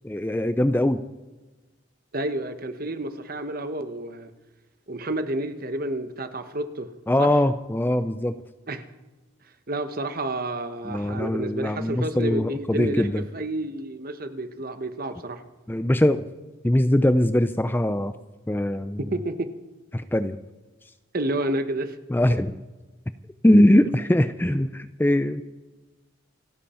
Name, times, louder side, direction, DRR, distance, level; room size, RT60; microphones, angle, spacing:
voice 1, 0.0-1.0 7.1-8.4 10.9-13.2 15.7-16.3 16.6-18.1 18.5-19.0 19.9-20.4 22.1-22.6 23.4-25.4, left 1 dB, 10° left, 11 dB, 0.4 m, -21 dB
voice 2, 2.1-4.3 4.9-6.9 7.2-7.3 8.7-8.9 9.7-13.1 13.3-15.4 19.0-19.5 21.1-22.0 23.8-24.0, right 1 dB, 45° right, 9 dB, 1.1 m, -30 dB
29.0 x 11.0 x 4.4 m, 1.2 s
head